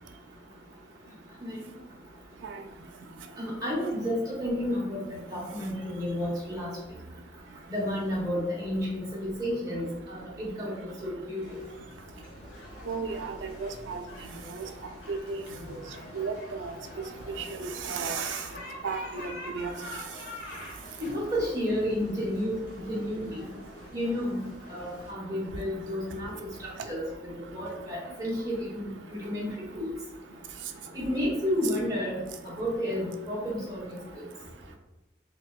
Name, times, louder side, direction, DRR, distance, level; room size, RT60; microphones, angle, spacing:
voice 1, 3.4-6.7 7.7-11.4 21.0-22.5 22.8-23.4 23.9-24.4 24.7-28.8 29.1-29.9 30.9-34.2, equal, 20° right, -6 dB, 1.2 m, -31 dB
sound 1, 11.4-25.1, left 1 dB, 65° left, 1.0 m, -45 dB
voice 2, 12.9-13.3 13.6-14.0 14.5-14.6 15.1-15.4 16.1-16.7 17.3-18.4 18.8-19.7, right 5 dB, 85° right, 5 dB, 0.4 m, -33 dB
4.3 x 2.2 x 2.4 m, 1.0 s
head